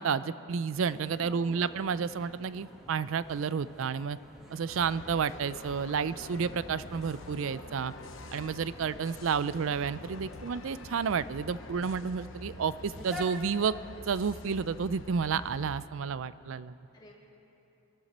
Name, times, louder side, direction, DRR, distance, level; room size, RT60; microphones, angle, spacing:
voice 1, 0.0-4.2 4.5-7.9 8.3-13.7 14.1-16.8, right 6 dB, 65° right, 16 dB, 0.4 m, -31 dB
sound 1, 0.7-13.3, left 1 dB, ahead, 1.4 m, -50 dB
voice 2, 1.1-1.7 10.0-10.4 16.9-17.1, equal, 20° left, -4 dB, 2.2 m, -51 dB
sound 2, 4.7-15.8, left 2 dB, 60° left, 0.8 m, -47 dB
24.5 x 11.5 x 4.2 m, 2.9 s
head